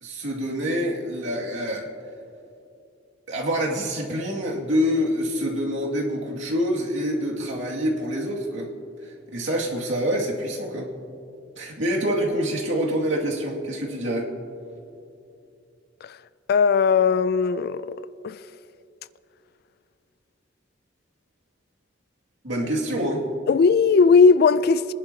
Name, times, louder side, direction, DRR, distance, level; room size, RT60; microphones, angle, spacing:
voice 1, 0.0-1.9 3.3-8.7 9.0-10.9 11.6-14.3 22.4-23.2, equal, 85° right, 2.2 m, -26 dB
voice 2, 16.5-18.0 18.2-18.4 23.5-24.9, left 5 dB, 55° left, 0.4 m, -18 dB
24.5 x 11.0 x 2.8 m
head